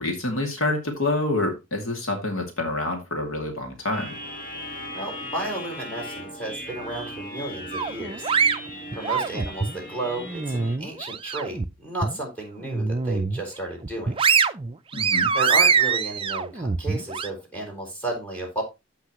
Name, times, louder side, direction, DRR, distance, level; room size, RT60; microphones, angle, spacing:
voice 1, 0.0-4.1 14.9-15.3, left 2 dB, 70° left, 3 dB, 2.3 m, -27 dB
sound 1, 3.9-10.8, equal, 40° left, 1.8 m, -38 dB
voice 2, 4.9-8.3 8.9-14.2 15.3-18.6, right 1 dB, 5° left, 0 dB, 4.4 m, -33 dB
sound 2, 7.7-9.8 10.2-11.7 12.0-12.2 12.6-13.4 13.8-17.3, right 5 dB, 25° right, 0.5 m, -23 dB
14.5 x 5.7 x 3.0 m, 0.24 s
head